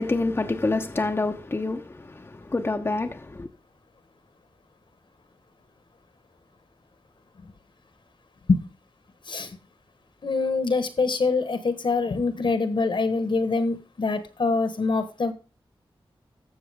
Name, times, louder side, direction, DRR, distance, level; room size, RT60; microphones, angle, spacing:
voice 1, 0.0-3.5, left 2 dB, 25° left, 0.8 m, -27 dB
voice 2, 10.2-15.3, left 4 dB, 60° left, 1.3 m, -24 dB
12.5 x 7.1 x 3.6 m
wide cardioid pair, 110°, 9 cm